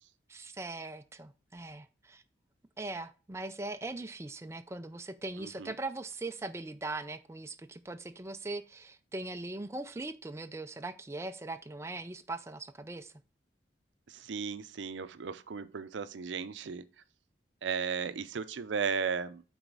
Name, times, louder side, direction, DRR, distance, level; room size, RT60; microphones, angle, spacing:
voice 1, 0.3-2.2 2.8-13.1, right 2 dB, 15° right, 0.4 m, -40 dB
voice 2, 5.4-5.7 14.1-16.9 17.6-19.4, right 6 dB, 85° right, 0.5 m, -35 dB
8.0 x 4.1 x 3.9 m
head